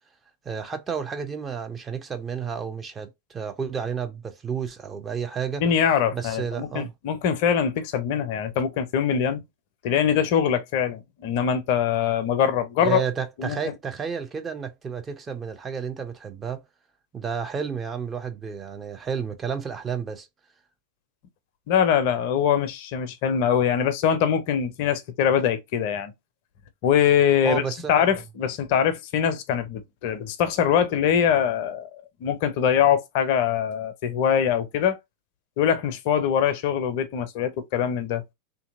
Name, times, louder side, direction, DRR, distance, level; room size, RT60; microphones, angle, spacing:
voice 1, 0.4-5.6 6.1-6.9 12.8-16.6 17.1-20.3 27.4-28.1, right 6 dB, 20° right, 0.5 m, -31 dB
voice 2, 5.6-9.4 9.8-13.0 13.4-13.6 21.7-26.1 26.8-27.6 27.9-31.9 32.2-35.0 35.6-38.2, left 8 dB, 45° left, 0.5 m, -23 dB
2.8 x 2.6 x 2.5 m
figure-of-eight pair, 90°, 0 cm